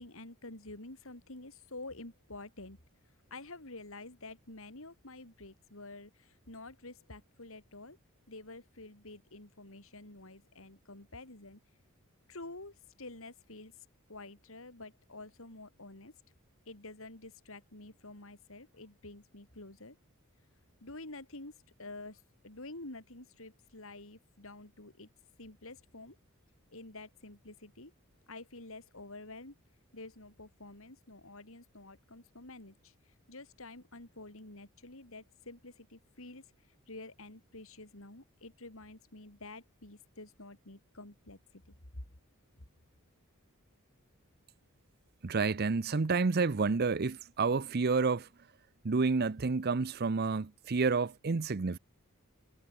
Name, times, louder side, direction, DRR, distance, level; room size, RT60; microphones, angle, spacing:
voice 1, 0.0-2.8 3.3-8.0 8.3-11.6 12.3-13.7 14.1-16.1 16.7-20.0 20.8-21.5 21.8-25.1 25.4-26.2 26.7-27.9 28.3-29.5 29.9-32.9 33.3-36.4 36.9-41.4 41.9-42.0 42.6-42.7, left 2 dB, 65° left, 3.7 m, -49 dB
voice 2, 45.2-48.3 48.8-51.8, right 4 dB, 45° right, 0.6 m, -29 dB
head